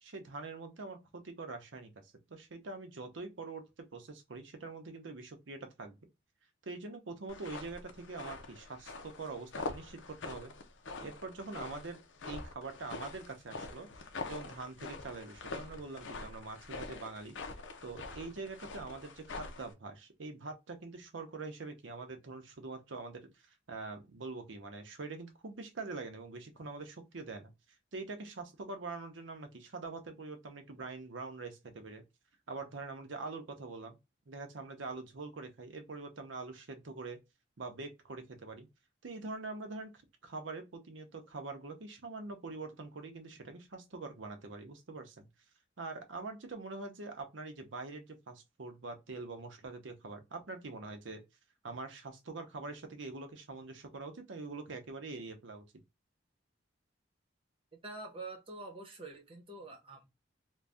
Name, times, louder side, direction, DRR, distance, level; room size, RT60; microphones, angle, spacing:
voice 1, 0.0-6.0 6.7-10.5 11.0-12.0 12.2-13.9 14.3-17.4 17.8-23.3 23.7-27.5 27.9-32.0 32.5-34.0 34.3-37.2 37.6-38.7 39.0-39.9 40.2-45.3 45.8-51.2 51.6-55.6, right 3 dB, 75° right, 0.7 m, -44 dB
sound 1, 7.3-19.7, left 3 dB, 75° left, 0.6 m, -45 dB
voice 2, 57.8-60.1, right 2 dB, 30° right, 0.9 m, -46 dB
2.6 x 2.3 x 3.3 m
head